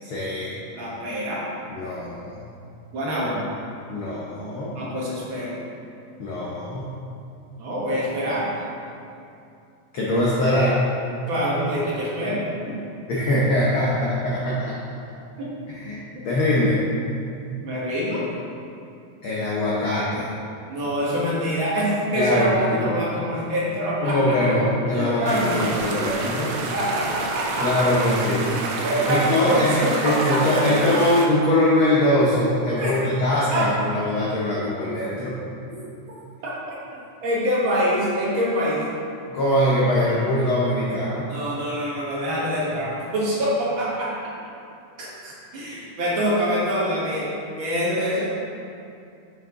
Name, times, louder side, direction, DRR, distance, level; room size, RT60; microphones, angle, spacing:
voice 1, 0.0-0.7 1.7-2.4 3.9-4.7 6.2-6.9 9.9-10.8 13.1-14.8 15.7-16.8 19.2-20.3 22.1-22.9 24.0-26.5 27.6-28.5 29.1-35.4 39.3-41.3, left 1 dB, 80° left, -6 dB, 1.1 m, -22 dB
voice 2, 0.7-1.4 2.9-3.4 4.7-5.6 7.6-8.5 11.3-12.8 15.4-15.5 17.6-18.2 20.7-24.4 24.9-25.6 26.7-27.8 28.5-30.9 32.8-33.0 33.5-33.6 35.7-35.8 36.7-36.8 37.2-38.8 41.3-44.1 45.0-47.3 47.6-48.3, equal, 55° right, -6 dB, 1.6 m, -25 dB
sound 1, 25.3-31.3, right 3 dB, 75° right, 1.5 m, -29 dB
6.4 x 6.4 x 3.6 m, 2.5 s
omnidirectional pair, 3.5 m